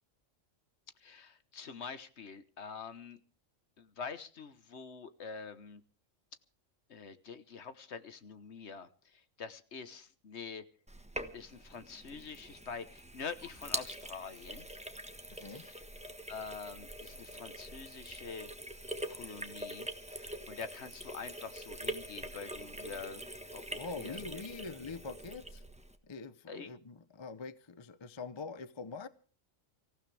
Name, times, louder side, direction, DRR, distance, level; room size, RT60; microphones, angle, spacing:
voice 1, 1.0-3.2 3.8-5.8 6.9-10.6 11.3-14.7 15.4-15.8 16.3-18.5 19.1-23.2 23.5-24.4 26.5-26.7, left 5 dB, 60° left, 1.4 m, -46 dB
Sink (filling or washing), 10.9-26.0, right 1 dB, 5° right, 1.2 m, -44 dB
voice 2, 15.3-15.7 23.8-25.6 26.0-29.1, left 4 dB, 30° left, 0.6 m, -44 dB
25.5 x 15.5 x 3.3 m
omnidirectional pair, 1.4 m